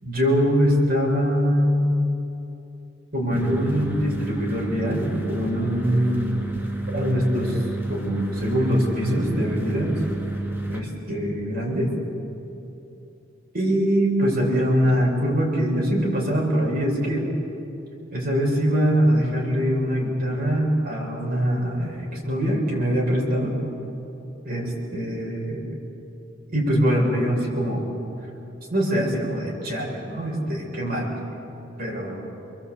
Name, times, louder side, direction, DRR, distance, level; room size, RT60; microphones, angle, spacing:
voice 1, 0.0-2.0 3.1-6.4 6.9-7.6 7.9-10.0 10.7-11.9 13.5-17.3 18.1-23.6 24.5-25.7 26.5-27.8 28.7-31.2 31.8-32.2, equal, 50° right, -1 dB, 6.7 m, -23 dB
Electric Sci-Fi Generator, 3.3-10.8, right 2 dB, 10° right, 2.8 m, -30 dB
29.0 x 22.5 x 8.4 m, 2.9 s
head